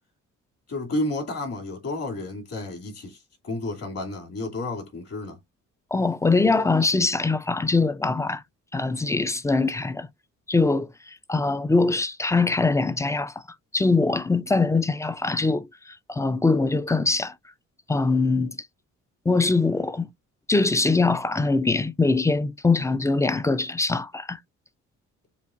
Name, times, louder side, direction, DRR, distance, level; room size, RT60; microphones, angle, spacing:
voice 1, 0.7-5.4, left 2 dB, 55° left, 2.6 m, -31 dB
voice 2, 5.9-8.4 8.7-10.1 10.5-13.3 13.7-17.3 17.9-18.6 19.3-20.1 20.5-24.4, left 3 dB, 10° left, 0.4 m, -22 dB
7.1 x 2.5 x 2.5 m
cardioid pair, 90°, 30 cm